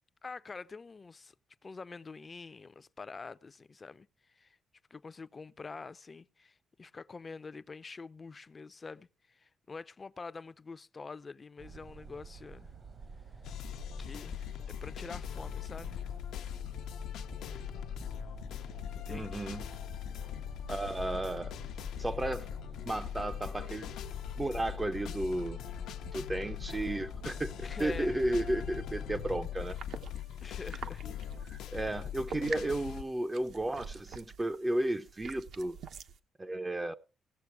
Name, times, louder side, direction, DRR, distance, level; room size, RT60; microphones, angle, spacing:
voice 1, 0.2-1.3 1.6-4.1 4.3-4.6 4.9-12.7 14.0-16.0 18.9-19.4 26.2-26.3 27.6-28.1 30.4-31.0, left 4 dB, 30° left, 0.5 m, -46 dB
sound 1, 11.6-29.4, right 5 dB, 45° right, 1.1 m, -49 dB
sound 2, 13.4-33.0, left 11 dB, 80° left, 0.8 m, -41 dB
voice 2, 19.1-19.7 20.7-21.6 22.0-22.5 22.8-23.9 24.4-25.6 26.1-29.8 31.5-35.8 36.4-36.9, right 1 dB, 15° right, 0.5 m, -33 dB
sound 3, 29.6-36.2, right 6 dB, 70° right, 1.0 m, -46 dB
17.5 x 6.8 x 4.7 m
cardioid pair, 90°, 0 cm